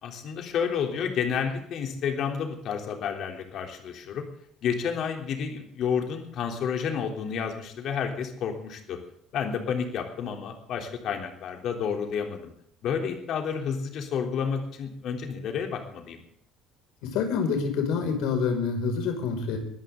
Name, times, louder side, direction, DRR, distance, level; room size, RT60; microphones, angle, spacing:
voice 1, 0.0-4.3 4.6-9.0 9.3-12.5 12.8-16.2, left 7 dB, 45° left, 4 dB, 3.3 m, -30 dB
voice 2, 17.0-19.6, left 5 dB, 75° left, 4 dB, 5.7 m, -27 dB
22.0 x 14.0 x 3.8 m, 0.69 s
cardioid pair, 175°, 0 cm